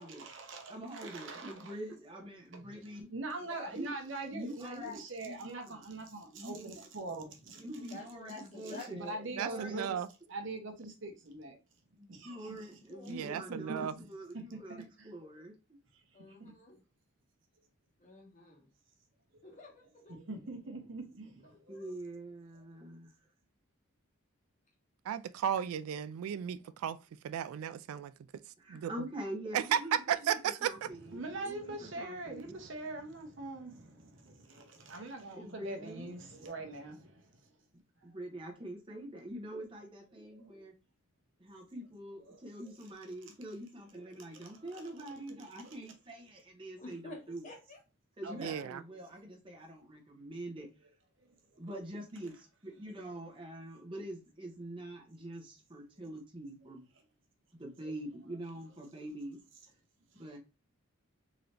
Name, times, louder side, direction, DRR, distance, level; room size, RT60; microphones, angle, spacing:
voice 1, 0.0-1.7 2.5-7.6 8.9-10.0 10.3-11.6 12.1-12.8 13.5-14.1 14.3-15.1 16.4-16.5 20.1-21.9 31.1-37.4 40.3-40.5 42.3-42.4 44.1-45.8 48.2-48.7, right 2 dB, 60° right, 1.0 m, -44 dB
voice 2, 0.7-3.1 3.7-3.9 4.3-5.0 5.2-5.9 6.3-6.8 7.6-10.0 12.0-15.5 21.7-23.1 28.6-32.6 35.3-36.1 38.0-40.7 41.4-47.4 48.2-50.7 51.6-56.8 57.5-59.4 60.1-60.4, right 1 dB, 25° right, 1.0 m, -45 dB
voice 3, 3.4-3.7 4.5-5.0 7.9-9.3 12.9-13.3 16.1-16.8 18.0-18.7 19.4-20.2 21.5-21.8 46.8-47.8 48.3-48.4, left 3 dB, 35° left, 1.1 m, -50 dB
voice 4, 9.4-10.1 13.1-13.9 25.1-27.0 27.2-28.1 28.7-28.9 29.5-30.7 48.4-48.8, right 9 dB, 90° right, 0.3 m, -34 dB
3.8 x 2.8 x 3.3 m
head